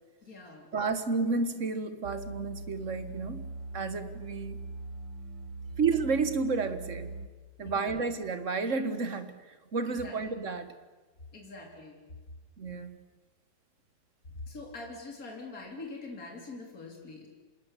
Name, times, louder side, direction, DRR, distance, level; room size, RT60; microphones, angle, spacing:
voice 1, 0.2-0.7 7.6-8.0 9.8-10.2 11.3-12.0 14.5-17.3, left 3 dB, 50° left, 1 dB, 4.0 m, -44 dB
voice 2, 0.7-3.5 3.7-4.6 5.8-7.2 7.6-10.7 12.6-13.0, right 4 dB, 45° right, 11 dB, 1.7 m, -31 dB
sound 1, 2.0-7.3, right 2 dB, 80° right, 1.8 m, -41 dB
26.5 x 20.0 x 8.3 m, 1.3 s
omnidirectional pair, 2.0 m